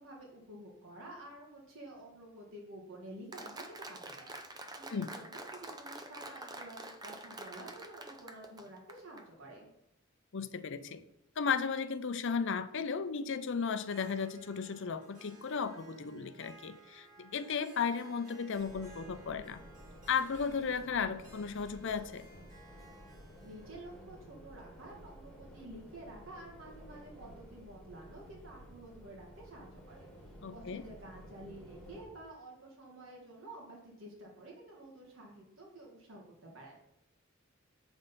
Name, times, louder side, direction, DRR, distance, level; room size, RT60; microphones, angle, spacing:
voice 1, 0.0-9.7 23.4-36.8, right 1 dB, 65° right, -2 dB, 1.6 m, -50 dB
Applause, 3.3-9.2, right 2 dB, 20° right, 0.6 m, -47 dB
voice 2, 10.3-11.0 11.4-19.6 20.1-22.2 30.4-30.8, left 6 dB, 60° left, 11 dB, 0.6 m, -35 dB
Harp, 13.8-25.7, right 2 dB, 40° right, 2.7 m, -58 dB
sound 1, 18.5-32.0, equal, ahead, 3.2 m, -53 dB
7.9 x 5.3 x 4.1 m, 0.81 s
head